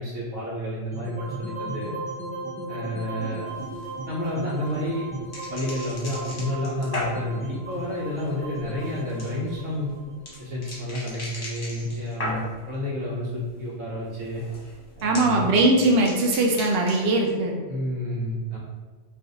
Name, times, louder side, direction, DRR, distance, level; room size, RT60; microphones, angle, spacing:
voice 1, 0.0-1.9 2.7-3.5 4.0-5.1 5.5-9.9 10.4-14.4 15.0-15.4 17.7-18.6, left 1 dB, 85° right, -7 dB, 1.1 m, -30 dB
sound 1, 0.9-11.1, right 2 dB, 10° left, 0.4 m, -36 dB
sound 2, 3.5-12.7 13.1-13.6 13.9-17.3, left 1 dB, 35° left, 0.8 m, -38 dB
voice 2, 15.0-17.6, right 2 dB, 65° right, 1 dB, 0.7 m, -20 dB
2.5 x 2.4 x 3.8 m, 1.4 s
omnidirectional pair, 1.3 m